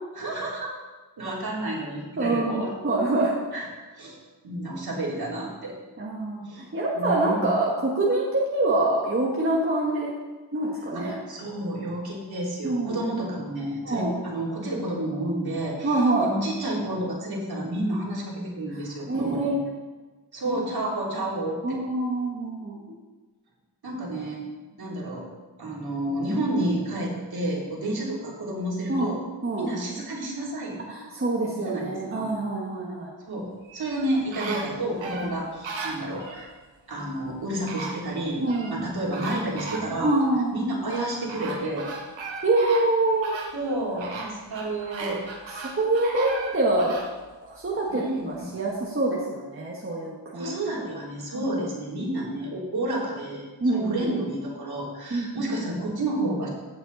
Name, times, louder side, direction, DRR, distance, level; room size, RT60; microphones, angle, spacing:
voice 1, 0.2-0.7 1.2-2.7 3.5-3.7 4.0-4.2 4.4-5.8 6.5-7.5 10.9-19.5 20.3-21.8 23.8-24.4 24.8-25.3 25.6-29.2 29.5-30.8 31.5-32.3 33.2-36.5 36.9-38.4 38.7-40.1 40.5-41.9 43.5-45.2 47.9-48.5 50.3-53.4 53.7-56.5, right 1 dB, 55° right, -3 dB, 3.6 m, -30 dB
voice 2, 2.2-3.3 6.0-10.1 10.5-11.2 12.6-13.0 13.8-14.1 15.8-16.3 19.1-19.5 20.5-20.6 21.6-22.9 28.9-29.1 29.4-29.7 30.9-33.1 38.4-38.8 40.0-40.5 42.4-43.3 45.8-47.0 47.4-50.5 51.3-51.5 53.6-54.1 55.1-55.5, right 2 dB, 30° right, -4 dB, 1.8 m, -25 dB
sound 1, 33.6-36.5 37.3-37.4 37.7-38.8 39.1-40.3 40.9-47.1 47.6-47.7, right 3 dB, 85° right, 1.8 m, -37 dB
15.0 x 8.0 x 4.2 m, 1.3 s
wide cardioid pair, 110°, 44 cm